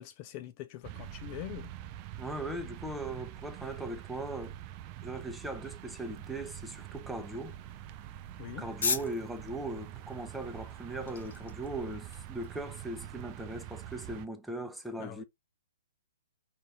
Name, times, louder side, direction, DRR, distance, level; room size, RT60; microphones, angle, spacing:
voice 1, 0.0-1.7 8.4-8.7 15.0-15.2, left 14 dB, 35° left, 0.4 m, -43 dB
sound 1, 0.8-14.3, right 12 dB, 35° right, 0.4 m, -45 dB
voice 2, 2.2-4.5 5.0-7.6 8.6-15.2, right 1 dB, ahead, 0.8 m, -39 dB
sound 2, 6.0-13.0, left 5 dB, 60° left, 1.0 m, -41 dB
5.4 x 2.6 x 3.7 m
figure-of-eight pair, 120°, 0 cm